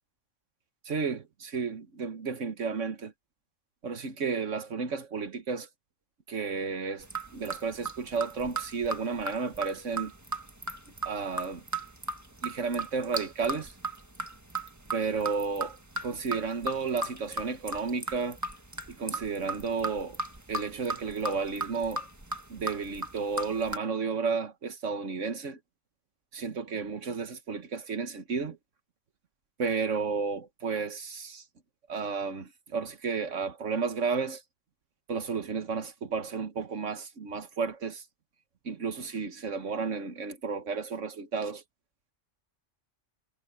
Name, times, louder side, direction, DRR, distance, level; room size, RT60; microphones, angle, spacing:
voice 1, 0.9-3.1 3.8-5.7 6.3-10.1 11.0-11.6 12.4-13.7 14.9-15.8 16.0-18.4 18.9-20.2 20.5-22.0 22.5-25.6 26.3-28.6 29.6-31.4 31.9-34.4 35.1-38.0 38.7-41.6, right 5 dB, 75° right, 1.7 m, -32 dB
sound 1, 7.0-23.8, right 2 dB, 15° right, 1.4 m, -37 dB
omnidirectional pair, 1.3 m